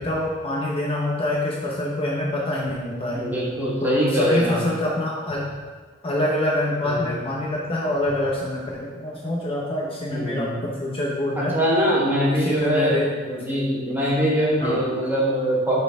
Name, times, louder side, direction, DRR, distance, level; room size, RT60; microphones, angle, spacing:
voice 1, 0.0-3.2 3.8-5.4 6.0-11.6 12.2-13.4 14.6-14.8, left 1 dB, 25° left, -4 dB, 0.8 m, -26 dB
voice 2, 3.1-4.7 6.8-7.2 10.1-10.7 11.4-13.0 13.4-15.8, equal, 10° right, -5 dB, 1.4 m, -23 dB
9.2 x 4.2 x 3.5 m, 1.5 s
head